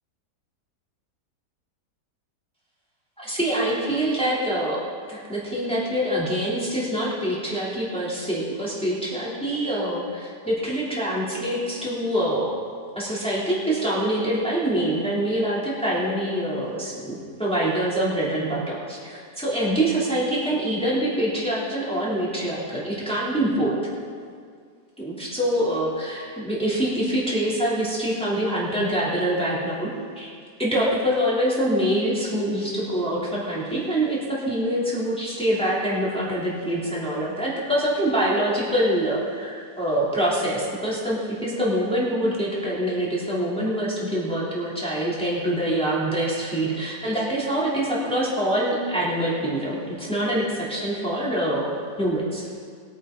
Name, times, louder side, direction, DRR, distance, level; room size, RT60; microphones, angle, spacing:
voice 1, 3.2-12.5 12.9-23.8 25.0-29.9 30.2-30.3 30.6-52.4, right 1 dB, 5° left, -7 dB, 2.9 m, -25 dB
21.0 x 9.1 x 3.9 m, 2.1 s
omnidirectional pair, 1.9 m